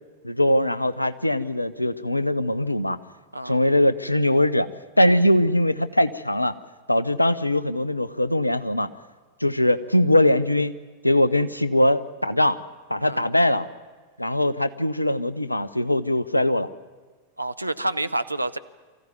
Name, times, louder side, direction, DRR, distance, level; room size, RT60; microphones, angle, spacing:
voice 1, 0.2-3.0 3.4-4.7 5.0-6.5 6.9-8.9 9.4-10.7 11.0-12.6 12.9-13.7 14.2-16.7, left 1 dB, 85° left, 14 dB, 0.7 m, -21 dB
voice 2, 17.4-18.6, right 1 dB, 85° right, 11 dB, 0.7 m, -28 dB
24.0 x 15.0 x 9.4 m, 1.4 s
figure-of-eight pair, 90°, 0 cm